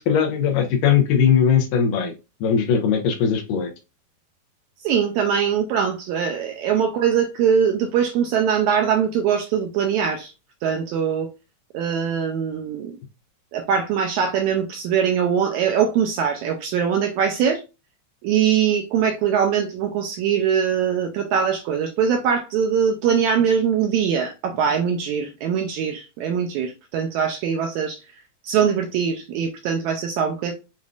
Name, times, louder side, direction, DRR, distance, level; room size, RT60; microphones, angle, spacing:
voice 1, 0.0-2.1 2.4-3.7, left 7 dB, 85° left, 2.5 m, -19 dB
voice 2, 4.8-10.3 10.6-11.3 11.7-12.9 13.5-17.6 18.2-28.0 28.4-30.5, right 7 dB, 80° right, 1.7 m, -22 dB
7.0 x 2.5 x 2.3 m
omnidirectional pair, 3.7 m